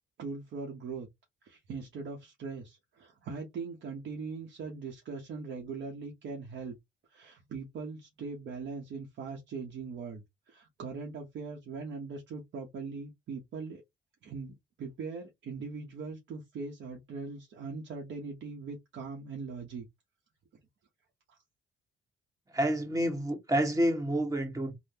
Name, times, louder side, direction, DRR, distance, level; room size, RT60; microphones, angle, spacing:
voice 1, 0.2-1.1 1.4-6.8 7.1-13.8 14.2-19.9 21.3-21.4, right 4 dB, 65° right, 0.7 m, -41 dB
voice 2, 22.5-24.7, right 1 dB, 20° right, 1.3 m, -28 dB
3.5 x 2.0 x 2.7 m
cardioid pair, 90°, 20 cm